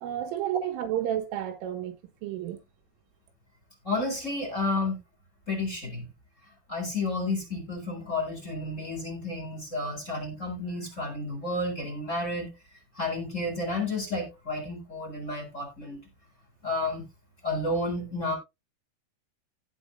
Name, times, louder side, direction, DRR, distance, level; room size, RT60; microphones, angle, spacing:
voice 1, 0.0-2.6, right 11 dB, 85° right, 4.0 m, -31 dB
voice 2, 3.8-5.0 5.5-6.1 6.7-12.5 12.9-16.0 16.6-17.1 17.4-18.3, left 2 dB, 15° left, 3.5 m, -31 dB
16.5 x 6.2 x 2.6 m
omnidirectional pair, 5.6 m